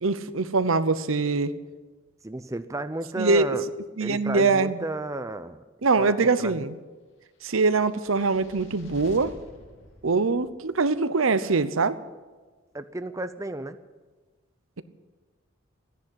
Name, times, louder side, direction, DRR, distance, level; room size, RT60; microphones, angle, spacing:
voice 1, 0.0-1.5 3.2-3.5 4.0-4.8 5.8-6.8 7.4-9.3 10.0-12.0, right 4 dB, 85° right, 13 dB, 0.8 m, -23 dB
voice 2, 2.2-3.6 4.0-5.6 6.0-6.7 12.7-13.8, right 2 dB, 15° right, 11 dB, 0.6 m, -33 dB
sound 1, 7.5-10.9, left 1 dB, 70° left, 2.4 m, -49 dB
14.0 x 10.5 x 10.0 m, 1.3 s
head